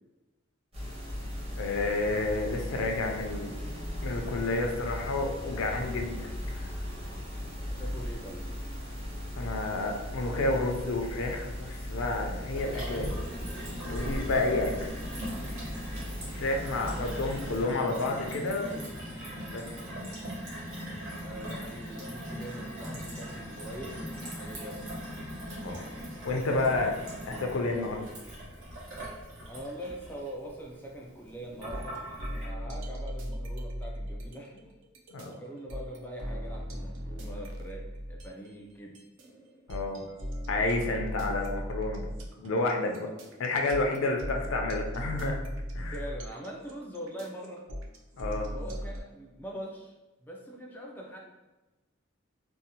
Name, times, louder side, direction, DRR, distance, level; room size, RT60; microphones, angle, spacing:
sound 1, 0.7-17.6, left 1 dB, 30° right, 0.8 m, -38 dB
voice 1, 1.6-3.6 4.0-6.7 9.4-13.2 13.9-14.9 16.3-18.8 19.5-19.7 25.6-25.9 26.2-27.0 27.3-28.1 35.1-35.3 39.7-40.0 40.5-42.0 42.4-43.1 43.4-45.4 45.8-46.0 48.2-48.5, left 2 dB, 85° left, 2 dB, 0.4 m, -30 dB
voice 2, 7.8-8.4 16.8-17.5 21.2-25.0 29.4-32.0 32.4-34.7 35.2-39.0 44.2-44.3 45.9-47.7 48.5-49.9 50.2-51.2, right 1 dB, 10° left, -2 dB, 0.4 m, -43 dB
Gurgling / Water tap faucet / Sink (filling or washing), 12.5-32.5, equal, 90° right, 1.0 m, -40 dB
sound 2, 31.7-38.5 38.9-49.0, equal, 65° right, 0.4 m, -37 dB
2.7 x 2.0 x 2.8 m, 1.1 s
head